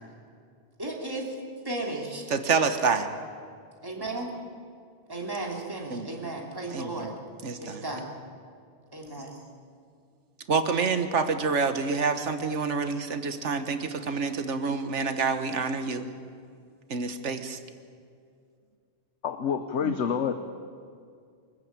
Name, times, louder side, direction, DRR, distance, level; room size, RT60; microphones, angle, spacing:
voice 1, 0.8-1.3 1.6-2.3 3.8-4.3 5.1-7.1 7.6-8.1 8.9-9.4, right 2 dB, 20° right, -1 dB, 3.0 m, -34 dB
voice 2, 2.3-3.1 5.9-6.3 6.7-7.1 7.4-7.8 10.5-16.1 16.9-17.6 19.8-20.0, right 5 dB, 90° right, 9 dB, 1.6 m, -28 dB
voice 3, 19.2-20.3, left 7 dB, 85° left, 9 dB, 1.2 m, -27 dB
24.0 x 14.5 x 8.9 m, 2.3 s
omnidirectional pair, 1.2 m